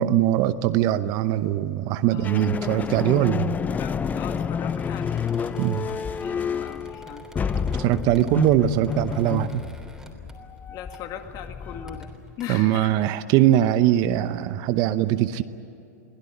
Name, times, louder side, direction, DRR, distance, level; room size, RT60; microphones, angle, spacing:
voice 1, 0.0-3.6 5.6-5.9 7.8-9.6 12.5-15.4, right 13 dB, 45° right, 13 dB, 0.8 m, -21 dB
voice 2, 2.1-2.4 3.2-3.4 3.7-7.3 10.7-13.1, left 9 dB, 40° left, 6 dB, 2.1 m, -39 dB
sound 1, 2.2-12.3, left 7 dB, 15° left, 0.6 m, -29 dB
Squeak, 4.6-10.6 10.9-11.2 11.7-12.4, right 1 dB, 5° right, 3.3 m, -49 dB
23.0 x 16.5 x 10.0 m, 2.8 s
hypercardioid pair, 110°, 9 cm